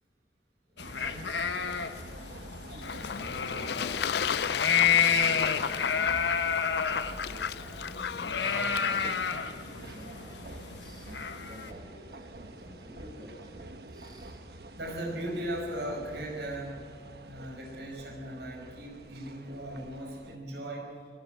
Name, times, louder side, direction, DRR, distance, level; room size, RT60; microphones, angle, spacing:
voice 1, 0.6-1.5 2.7-4.4 4.8-6.2 6.8-13.6 13.9-14.4, equal, 25° right, -1 dB, 5.4 m, -51 dB
sound 1, 0.8-11.7, left 7 dB, 85° left, 1.2 m, -30 dB
sound 2, 0.8-20.4, right 2 dB, 65° right, 1.2 m, -48 dB
Fowl / Bird / Water, 2.8-9.4, left 7 dB, 70° left, 0.4 m, -34 dB
voice 2, 14.7-16.8 17.2-20.9, right 1 dB, 80° right, 0 dB, 5.4 m, -38 dB
24.0 x 13.0 x 9.2 m, 2.1 s
head